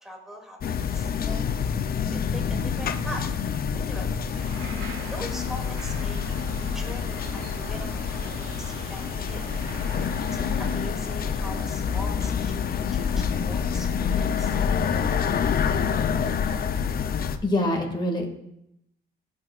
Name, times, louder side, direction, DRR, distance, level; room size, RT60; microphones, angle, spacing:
voice 1, 0.0-1.5 2.1-3.2 3.7-4.2 5.1-6.2 6.7-9.4 10.3-14.5, equal, ahead, -1 dB, 2.6 m, -41 dB
sound 1, 0.6-17.4, left 7 dB, 50° left, 0.6 m, -27 dB
sound 2, 4.3-10.8, right 4 dB, 90° right, 1.7 m, -42 dB
voice 2, 17.4-18.3, left 1 dB, 25° left, 1 dB, 2.1 m, -24 dB
16.0 x 6.4 x 2.5 m, 0.79 s
cardioid pair, 90°, 20 cm